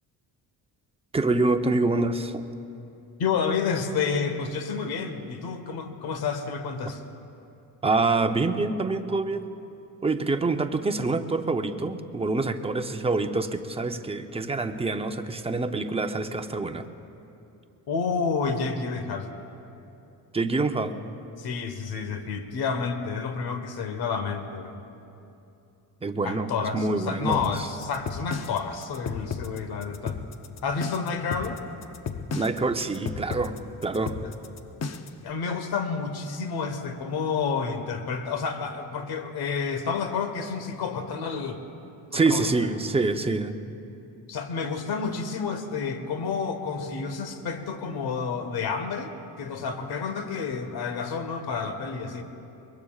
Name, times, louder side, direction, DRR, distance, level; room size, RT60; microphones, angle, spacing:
voice 1, 1.1-2.4 7.8-9.4 10.0-16.9 20.3-21.0 26.0-27.7 32.3-33.6 33.8-34.2 42.1-43.6, right 3 dB, 15° right, 7 dB, 0.7 m, -26 dB
voice 2, 3.2-7.0 17.9-19.3 21.4-24.7 26.2-30.2 30.6-31.6 34.2-34.3 35.2-41.6 42.1-42.5 44.3-49.1 49.4-52.2, left 5 dB, 70° left, 7 dB, 1.3 m, -30 dB
sound 1, 27.3-35.2, left 5 dB, 40° left, 0.8 m, -34 dB
23.5 x 21.5 x 2.4 m, 2.8 s
cardioid pair, 105°, 39 cm